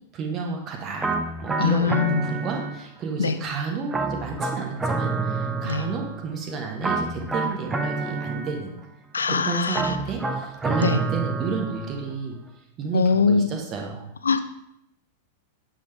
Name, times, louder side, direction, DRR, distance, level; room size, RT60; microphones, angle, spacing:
voice 1, 0.1-1.1 1.4-8.7 9.3-12.4 12.8-14.1, right 4 dB, 30° right, 1 dB, 1.0 m, -31 dB
sound 1, 1.0-3.1 3.9-6.3 6.8-8.9 9.7-12.1, right 3 dB, 15° right, 0.5 m, -28 dB
voice 2, 1.6-2.3 3.2-3.4 5.6-5.8 9.1-9.8 10.8-11.0 12.9-13.5 14.2-14.5, left 5 dB, 75° left, 10 dB, 0.4 m, -22 dB
7.6 x 3.7 x 3.4 m, 0.78 s
figure-of-eight pair, 95°, 0 cm